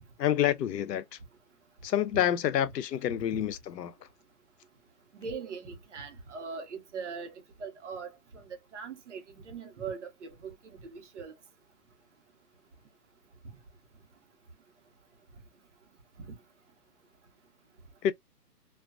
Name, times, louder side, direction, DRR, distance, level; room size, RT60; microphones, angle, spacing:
voice 1, 0.2-1.2 1.8-3.9 18.0-18.1, left 10 dB, 75° left, 0.6 m, -28 dB
voice 2, 5.1-7.3 7.6-11.3 16.2-16.3, right 5 dB, 45° right, 0.8 m, -41 dB
2.3 x 2.3 x 2.3 m
hypercardioid pair, 155°, 49 cm